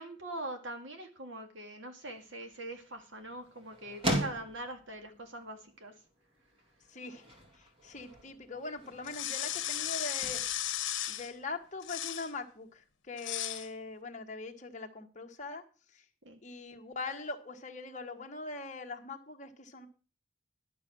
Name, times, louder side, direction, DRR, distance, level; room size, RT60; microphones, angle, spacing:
voice 1, 0.0-5.9 16.3-16.4, right 1 dB, 70° right, 5 dB, 2.0 m, -43 dB
sound 1, 2.0-11.8, right 1 dB, 25° right, 2.4 m, -41 dB
voice 2, 6.9-7.3 7.5-10.4 11.1-15.6 15.9-16.0 16.4-19.9, left 3 dB, 40° left, 4 dB, 1.4 m, -42 dB
sound 2, 9.0-11.3 11.8-12.3 13.2-13.7, left 12 dB, 65° left, 1.2 m, -35 dB
11.5 x 7.1 x 6.1 m, 0.35 s
head